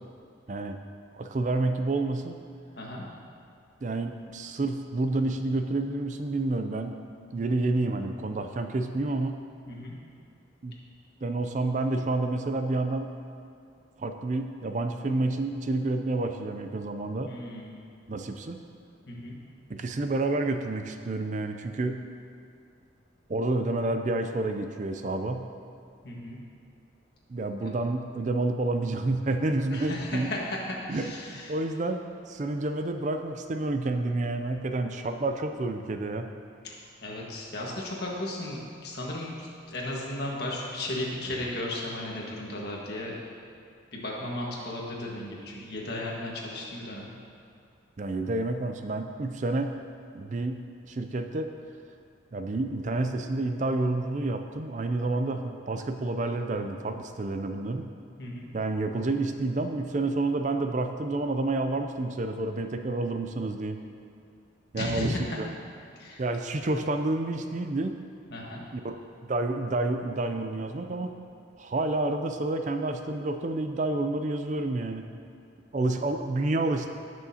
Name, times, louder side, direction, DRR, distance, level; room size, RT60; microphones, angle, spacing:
voice 1, 0.5-0.8 1.1-2.4 3.8-6.9 7.3-9.4 10.6-10.8 11.2-13.1 14.0-17.3 18.1-18.6 19.7-22.0 23.3-25.5 27.3-30.3 30.9-32.0 32.3-36.3 48.0-49.7 50.1-50.6 50.9-51.5 52.3-57.9 58.5-63.8 64.7-65.5 66.2-67.9 68.8-69.0 69.2-71.1 71.6-75.1 75.7-76.9, right 2 dB, 40° right, 6 dB, 0.4 m, -29 dB
voice 2, 17.3-17.7 19.1-19.3 26.0-26.4 27.6-27.7 29.7-30.4 30.7-31.6 36.6-43.2 43.9-47.1 58.2-58.5 64.7-65.4 66.0-66.2 68.3-68.6, left 1 dB, 55° left, -3 dB, 1.6 m, -35 dB
17.5 x 6.3 x 2.8 m, 2.4 s
head